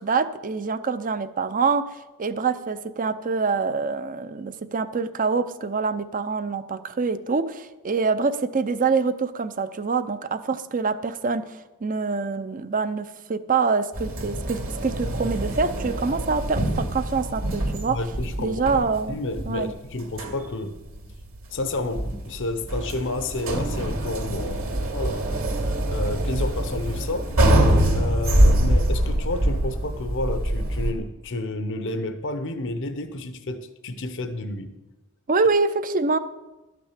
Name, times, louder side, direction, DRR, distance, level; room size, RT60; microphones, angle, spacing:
voice 1, 0.0-18.0 18.4-19.2 19.4-19.7 35.3-36.2, right 4 dB, 40° right, 12 dB, 0.6 m, -25 dB
sound 1, 13.9-30.9, right 1 dB, 65° right, 2.5 m, -24 dB
voice 2, 17.9-18.6 19.1-20.8 21.5-25.3 25.9-27.3 27.9-34.7, left 2 dB, 60° left, 8 dB, 0.8 m, -30 dB
12.5 x 6.0 x 8.3 m, 1.1 s
head